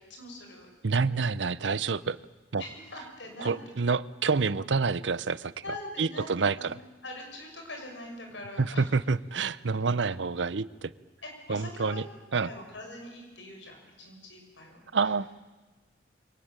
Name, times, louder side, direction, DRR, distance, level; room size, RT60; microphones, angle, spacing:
voice 1, 0.0-0.7 2.6-3.5 5.6-6.7 7.0-8.9 11.2-12.0 12.4-14.9, left 1 dB, 85° left, 3 dB, 6.1 m, -43 dB
voice 2, 0.8-2.2 2.5-2.6 3.4-5.5 6.0-6.8 8.6-10.9 11.5-12.0 12.3-12.5 14.9-15.4, right 4 dB, 80° right, 18 dB, 0.7 m, -28 dB
23.5 x 18.0 x 9.0 m, 1.2 s
head